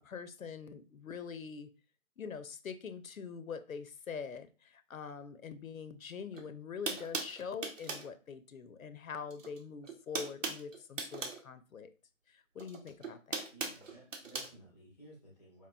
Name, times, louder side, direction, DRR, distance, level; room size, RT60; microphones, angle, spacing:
voice 1, 0.0-1.7 2.2-11.9 12.3-13.5, left 6 dB, 85° left, 12 dB, 0.5 m, -44 dB
sound 1, 6.3-6.4 6.9-8.1 9.3-9.6 9.8-11.4 12.6-14.5, right 4 dB, 65° right, 0.9 m, -39 dB
voice 2, 13.5-15.7, right 1 dB, ahead, -4 dB, 0.7 m, -56 dB
4.6 x 2.9 x 2.2 m, 0.33 s
figure-of-eight pair, 150°, 41 cm